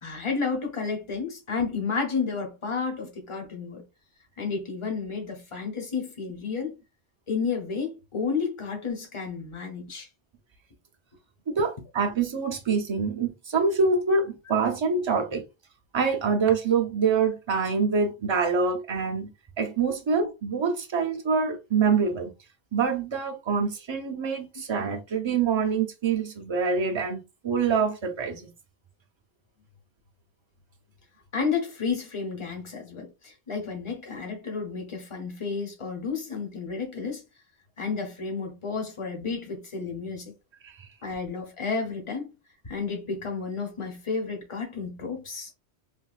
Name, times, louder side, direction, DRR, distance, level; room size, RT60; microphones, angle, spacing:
voice 1, 0.0-3.8 4.4-6.7 7.3-10.1 31.3-37.2 37.8-40.3 41.0-42.3 42.6-45.5, left 5 dB, 30° left, 0.8 m, -31 dB
voice 2, 11.5-15.4 15.9-19.3 19.6-22.3 22.7-28.5 40.6-40.8, right 5 dB, 35° right, 0.5 m, -25 dB
3.4 x 2.2 x 2.4 m
omnidirectional pair, 1.1 m